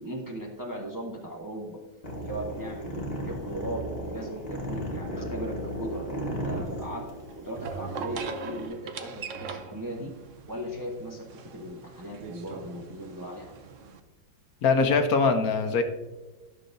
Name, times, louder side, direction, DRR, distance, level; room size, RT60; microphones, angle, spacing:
voice 1, 0.0-1.8 2.2-7.1 7.4-10.1 10.5-13.5, right 1 dB, 30° right, -2 dB, 0.4 m, -38 dB
sound 1, 2.0-8.7, equal, 25° left, 1.3 m, -35 dB
sound 2, 5.4-14.0, right 5 dB, 65° right, 0.8 m, -41 dB
voice 2, 14.6-15.8, left 4 dB, 65° left, 6 dB, 1.0 m, -22 dB
12.5 x 6.5 x 2.6 m, 1.2 s
omnidirectional pair, 2.0 m